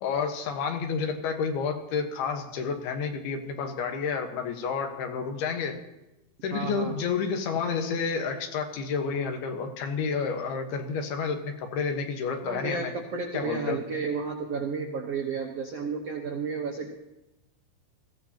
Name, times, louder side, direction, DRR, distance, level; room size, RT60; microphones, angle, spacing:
voice 1, 0.0-5.8 6.4-12.9 13.3-13.8, left 5 dB, 80° left, 5 dB, 3.2 m, -30 dB
voice 2, 6.5-7.0 12.4-16.9, right 5 dB, 80° right, 1 dB, 1.4 m, -32 dB
20.5 x 15.5 x 2.9 m, 0.96 s
omnidirectional pair, 4.5 m